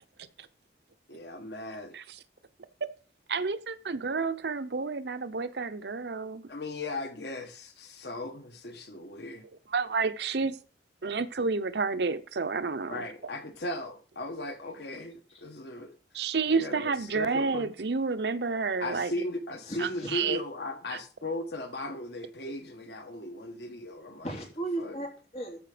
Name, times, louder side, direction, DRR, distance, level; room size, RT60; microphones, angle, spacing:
voice 1, 1.1-1.9 6.5-9.4 12.9-15.9 16.2-17.7 18.8-24.3 24.8-25.0, left 1 dB, 65° left, 6 dB, 1.4 m, -37 dB
voice 2, 3.3-6.4 9.7-10.6 11.0-13.1 16.1-19.1 19.8-20.4 20.9-21.0 22.5-22.6, right 4 dB, 65° right, 12 dB, 0.7 m, -30 dB
voice 3, 19.7-20.1 24.2-25.6, right 2 dB, 40° left, 0 dB, 3.4 m, -36 dB
13.5 x 5.0 x 5.0 m, 0.37 s
head